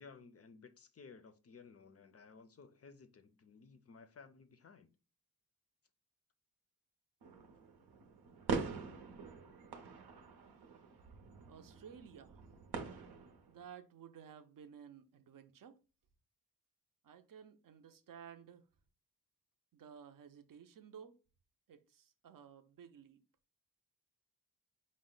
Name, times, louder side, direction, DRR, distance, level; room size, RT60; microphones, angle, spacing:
voice 1, 0.0-4.9, left 5 dB, 40° left, 0.4 m, -57 dB
sound 1, 7.2-13.6, right 5 dB, 90° right, 0.8 m, -44 dB
voice 2, 11.5-12.7 13.5-15.8 17.0-18.6 19.7-21.2 21.7-23.2, right 7 dB, 60° right, 0.6 m, -55 dB
5.1 x 2.1 x 3.8 m
wide cardioid pair, 170°, 38 cm